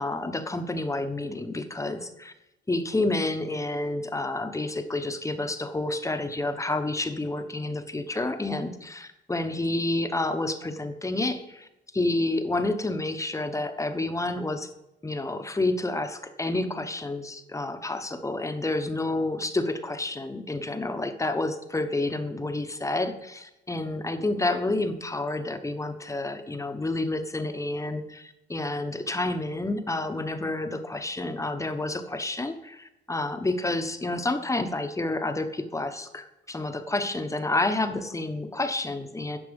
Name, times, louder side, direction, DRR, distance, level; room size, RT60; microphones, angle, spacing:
voice 1, 0.0-2.3 2.7-11.7 11.9-14.7 15.0-39.4, left 2 dB, 15° left, 8 dB, 1.0 m, -29 dB
10.5 x 5.9 x 5.3 m, 0.91 s
cardioid pair, 90°, 20 cm